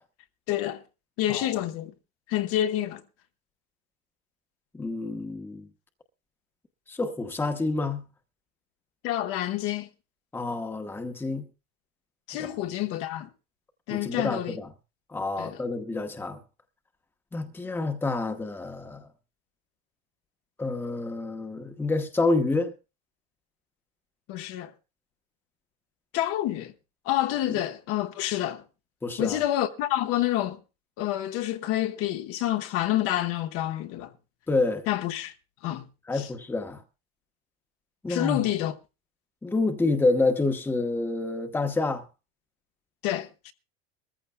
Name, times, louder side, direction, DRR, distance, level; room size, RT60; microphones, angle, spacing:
voice 1, 0.5-0.8 1.2-1.9 2.3-3.0 9.0-9.9 12.3-13.3 13.9-14.6 15.4-15.6 24.3-24.7 26.1-26.7 27.0-28.6 29.2-30.6 31.0-34.1 34.9-35.3 35.6-35.8 36.1-36.3 38.1-38.7 43.0-43.5, left 13 dB, 50° left, 1.1 m, -28 dB
voice 2, 4.7-5.7 6.9-8.1 10.3-11.5 12.4-12.5 13.9-14.7 15.1-16.4 17.3-19.1 20.6-22.7 27.5-27.6 29.0-29.4 34.5-34.9 36.1-36.8 38.0-38.4 39.4-42.0, left 3 dB, 5° left, 1.0 m, -28 dB
22.5 x 14.5 x 2.2 m
supercardioid pair, 145°, 29 cm